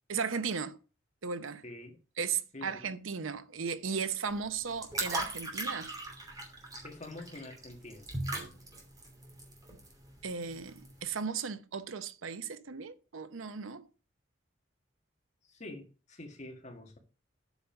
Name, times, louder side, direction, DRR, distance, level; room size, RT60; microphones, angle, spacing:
voice 1, 0.1-0.8 1.2-1.6 2.2-5.9 10.2-13.9, right 6 dB, 85° right, 0.7 m, -36 dB
voice 2, 1.6-2.0 2.5-2.8 6.8-8.1 15.5-17.0, left 2 dB, 35° left, 1.8 m, -46 dB
sound 1, 4.3-11.0, right 2 dB, 20° right, 2.7 m, -40 dB
8.2 x 5.5 x 5.7 m
head